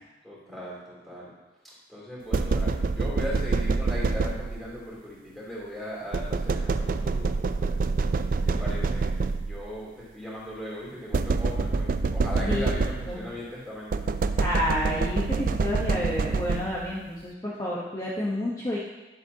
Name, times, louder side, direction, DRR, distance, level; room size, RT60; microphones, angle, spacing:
voice 1, 0.2-1.3 1.6-7.8 8.4-9.1 9.4-13.9, left 1 dB, ahead, -8 dB, 3.1 m, -38 dB
sound 1, 2.3-4.8 6.1-9.7 11.1-13.3 13.9-17.0, right 4 dB, 50° right, 0.3 m, -26 dB
voice 2, 12.4-12.7 13.1-13.2 14.4-18.8, left 1 dB, 20° left, -6 dB, 1.0 m, -30 dB
10.5 x 7.6 x 2.8 m, 1.1 s
head